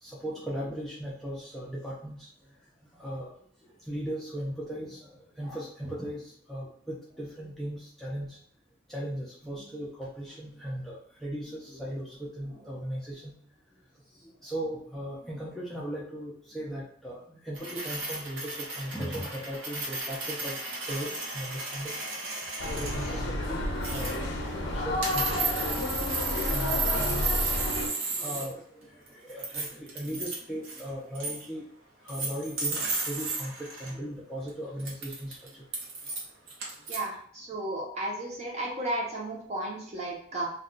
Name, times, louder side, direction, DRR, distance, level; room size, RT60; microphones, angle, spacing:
voice 1, 0.0-2.3 2.9-3.3 3.8-8.4 8.9-13.3 14.1-22.0 22.8-24.2 24.7-25.5 26.5-27.4 27.8-31.6 32.0-35.6, equal, ahead, -7 dB, 0.4 m, -38 dB
sound 1, 17.5-23.2 23.8-24.5 25.0-28.5 28.8-30.4 30.6-30.9 31.1-31.5 32.1-33.9 34.5-34.6 34.8-37.0, right 3 dB, 70° right, 0.8 m, -34 dB
Barcelona undergroung artis, 22.6-27.9, left 1 dB, 60° left, 0.5 m, -30 dB
voice 2, 36.9-40.5, right 1 dB, 35° right, -3 dB, 0.7 m, -33 dB
2.3 x 2.3 x 3.7 m, 0.62 s
head